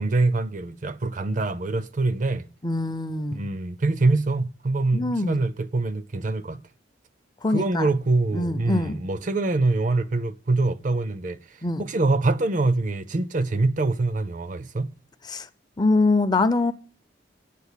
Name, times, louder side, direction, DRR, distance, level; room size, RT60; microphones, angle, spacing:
voice 1, 0.0-2.5 3.3-6.6 7.5-11.4 11.8-14.9, right 2 dB, 40° right, 0.5 m, -24 dB
voice 2, 2.6-3.5 4.9-5.5 7.4-7.9 8.3-9.0 11.6-11.8 15.2-15.5 15.8-16.7, left 2 dB, 20° left, 0.5 m, -24 dB
8.6 x 8.3 x 8.2 m
head